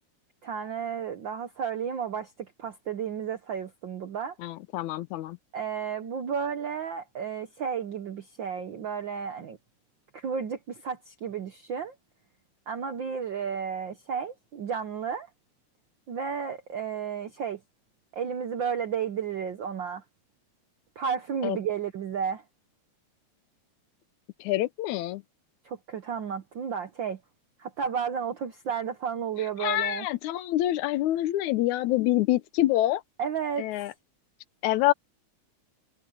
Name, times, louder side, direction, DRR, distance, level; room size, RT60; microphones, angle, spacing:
voice 1, 0.4-4.4 5.5-9.6 10.1-11.9 12.7-15.3 16.1-17.6 18.1-20.0 21.0-22.4 25.6-27.2 27.6-30.1 33.2-33.8, right 7 dB, 70° right, 1.1 m, -32 dB
voice 2, 4.4-5.4 21.4-21.6 24.4-25.2 29.6-33.0 33.6-33.9 34.6-34.9, left 15 dB, 85° left, 2.1 m, -26 dB
omnidirectional pair, 3.4 m